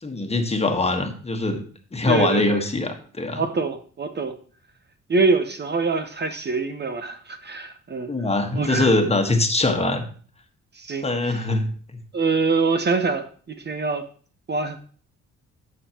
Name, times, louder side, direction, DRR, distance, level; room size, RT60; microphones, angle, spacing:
voice 1, 0.0-1.6 1.9-3.4 8.1-10.0 11.0-11.7, left 2 dB, 20° left, 5 dB, 1.5 m, -22 dB
voice 2, 2.1-2.6 3.3-4.4 5.1-8.1 8.5-8.9 10.7-11.5 12.1-14.1 14.5-14.8, right 4 dB, 35° right, 8 dB, 1.0 m, -24 dB
11.5 x 7.3 x 3.0 m, 0.43 s
cardioid pair, 90°, 30 cm